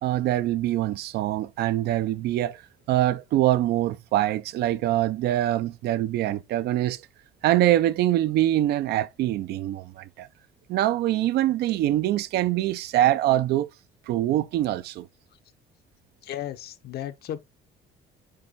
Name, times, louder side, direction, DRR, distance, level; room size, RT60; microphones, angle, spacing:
voice 1, 0.0-2.6 2.9-7.0 7.4-10.3 10.7-13.7 14.1-15.1, right 13 dB, 75° right, 0.6 m, -24 dB
voice 2, 16.2-17.4, left 11 dB, 70° left, 1.0 m, -34 dB
8.8 x 3.2 x 4.1 m
cardioid pair, 110°, 17 cm